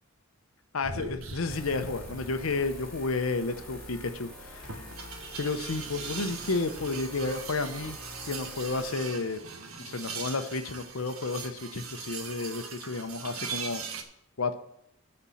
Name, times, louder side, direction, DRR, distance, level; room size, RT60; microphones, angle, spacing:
voice 1, 0.7-4.9 5.4-8.0 8.3-9.4 9.8-13.8 14.4-14.5, left 3 dB, 75° left, 8 dB, 0.8 m, -31 dB
sound 1, 0.8-14.0, right 5 dB, 80° right, 1.4 m, -41 dB
sound 2, 1.5-8.9, left 1 dB, 5° left, 3.8 m, -46 dB
12.5 x 4.4 x 7.1 m, 0.78 s
head